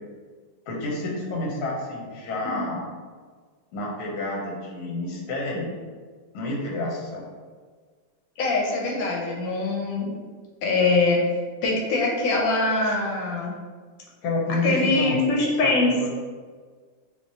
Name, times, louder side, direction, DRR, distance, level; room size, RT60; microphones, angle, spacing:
voice 1, 0.7-2.9 3.7-5.7 6.3-7.2 14.2-15.2 15.6-16.1, left 2 dB, 65° left, -2 dB, 1.2 m, -29 dB
voice 2, 8.4-10.2 10.6-11.2 11.6-13.5 14.6-16.1, left 3 dB, 85° left, -1 dB, 1.3 m, -23 dB
3.5 x 2.8 x 2.7 m, 1.5 s
omnidirectional pair, 2.0 m